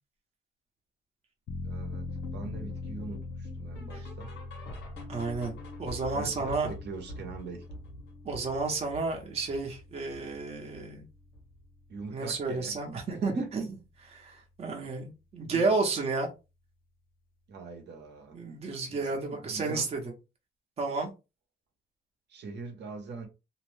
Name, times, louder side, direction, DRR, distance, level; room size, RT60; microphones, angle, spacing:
sound 1, 1.5-14.0 14.3-14.4, left 3 dB, 55° left, 0.4 m, -43 dB
voice 1, 1.6-2.1 2.3-4.3 6.1-7.6 11.9-13.5 15.5-15.6 17.5-18.4 18.9-19.9 22.3-23.3, right 4 dB, 75° right, 0.8 m, -43 dB
sound 2, 1.9-11.0 11.3-11.6 11.9-12.0 12.5-12.6 13.2-13.3, left 1 dB, 90° left, 1.1 m, -47 dB
voice 2, 5.1-6.7 8.2-11.1 12.1-16.3 18.3-20.1 20.8-21.1, right 3 dB, 35° right, 0.7 m, -31 dB
2.6 x 2.0 x 3.1 m
wide cardioid pair, 150°, 18 cm